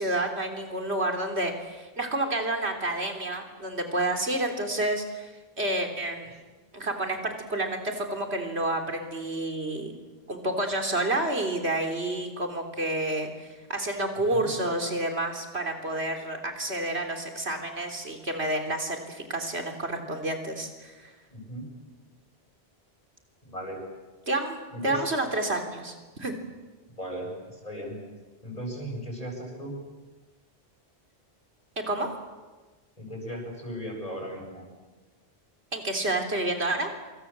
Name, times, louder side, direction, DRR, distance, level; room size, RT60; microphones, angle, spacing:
voice 1, 0.0-5.3 5.6-6.3 6.7-9.9 10.3-21.1 24.3-26.4 31.8-32.1 35.7-36.9, right 1 dB, 85° right, 3 dB, 3.7 m, -29 dB
voice 2, 21.3-21.7 23.5-23.8 24.7-25.0 26.9-28.0 28.4-29.7 33.0-34.6, equal, 35° left, 0 dB, 8.1 m, -37 dB
27.0 x 26.5 x 7.5 m, 1.3 s
omnidirectional pair, 1.1 m